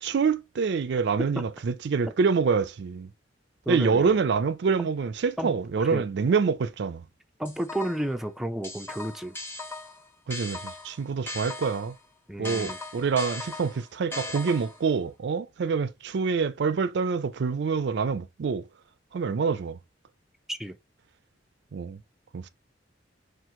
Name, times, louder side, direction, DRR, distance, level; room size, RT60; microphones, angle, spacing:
voice 1, 0.0-3.1 3.7-7.1 10.3-11.9 12.4-18.7 19.1-19.8 21.7-22.0 22.3-22.5, right 5 dB, 65° right, 0.4 m, -26 dB
voice 2, 3.7-4.2 4.8-4.9 5.4-6.0 7.4-9.3 12.3-12.8 20.5-20.8, right 1 dB, ahead, 0.4 m, -32 dB
sound 1, 7.5-8.2 8.6-12.0 12.4-14.9, left 2 dB, 15° left, 1.0 m, -38 dB
4.4 x 2.5 x 3.7 m
head